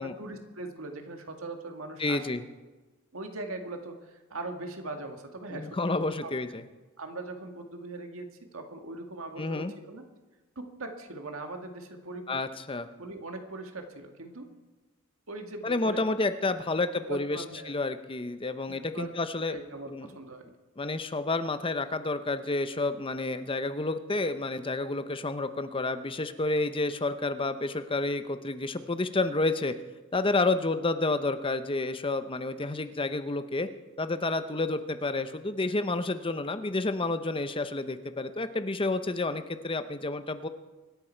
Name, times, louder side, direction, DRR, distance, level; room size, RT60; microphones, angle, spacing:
voice 1, 0.0-2.3 3.1-6.3 7.0-10.0 10.6-12.4 13.0-14.5 15.3-16.0 17.1-17.7 18.9-19.1 19.5-20.5, right 2 dB, 75° right, 5 dB, 1.9 m, -40 dB
voice 2, 2.0-2.4 5.5-6.6 9.4-9.7 12.3-12.9 15.6-19.6 19.8-20.1 20.8-29.7 30.1-33.7 34.0-40.5, left 2 dB, 25° left, 10 dB, 0.8 m, -30 dB
25.0 x 10.5 x 4.5 m, 1.2 s
head